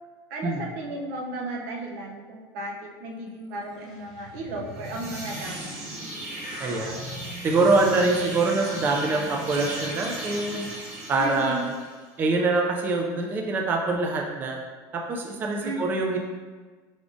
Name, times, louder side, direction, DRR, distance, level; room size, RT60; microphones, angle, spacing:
voice 1, 0.3-2.7 3.0-5.8 11.1-11.7 15.6-15.9, right 2 dB, 80° right, 0 dB, 0.6 m, -34 dB
sound 1, 3.5-11.7, equal, 5° right, 1.0 m, -41 dB
sound 2, 4.6-12.0, right 1 dB, 60° right, 1.3 m, -38 dB
voice 2, 6.6-7.0 7.4-10.7 11.1-11.7 12.2-14.6 14.9-16.2, right 3 dB, 20° right, 1 dB, 0.3 m, -24 dB
4.8 x 3.5 x 2.5 m, 1.4 s
cardioid pair, 165°, 9 cm